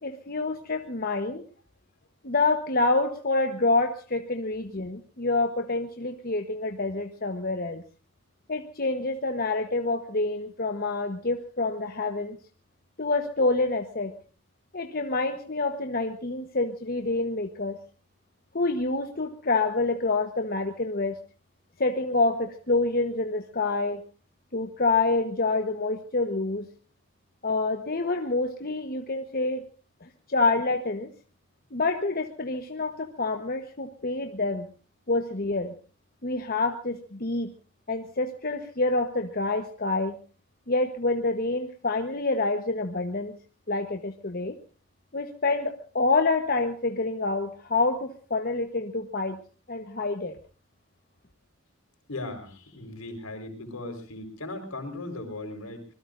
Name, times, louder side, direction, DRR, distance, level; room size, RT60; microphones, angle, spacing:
voice 1, 0.0-1.4 2.2-7.8 8.5-12.4 13.0-14.1 14.7-17.8 18.5-21.2 21.8-24.0 24.5-26.7 27.4-29.7 30.0-31.1 31.7-34.7 35.1-35.7 36.2-37.5 37.9-40.2 40.7-43.4 43.7-44.6 45.1-49.4 49.7-50.4, left 3 dB, 45° left, 5 dB, 1.1 m, -27 dB
voice 2, 52.1-55.9, left 2 dB, 80° left, 5 dB, 4.6 m, -37 dB
25.5 x 21.0 x 2.6 m, 0.38 s
head